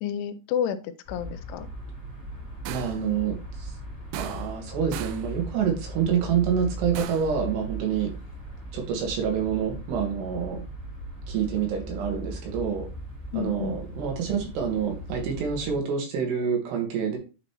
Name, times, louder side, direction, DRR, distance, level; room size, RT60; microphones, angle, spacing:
voice 1, 0.0-1.7 13.3-13.8, left 8 dB, 85° left, 11 dB, 3.0 m, -30 dB
sound 1, 1.0-15.8, right 1 dB, 25° right, 2.2 m, -38 dB
voice 2, 2.7-3.7 4.1-8.1 8.7-10.6 11.3-12.9 13.3-17.2, right 7 dB, 70° right, 2 dB, 3.4 m, -27 dB
sound 2, 2.7-3.1 4.1-4.7 4.9-5.3 6.9-7.4, right 11 dB, 85° right, 2.4 m, -37 dB
9.0 x 5.1 x 3.0 m, 0.32 s
omnidirectional pair, 5.4 m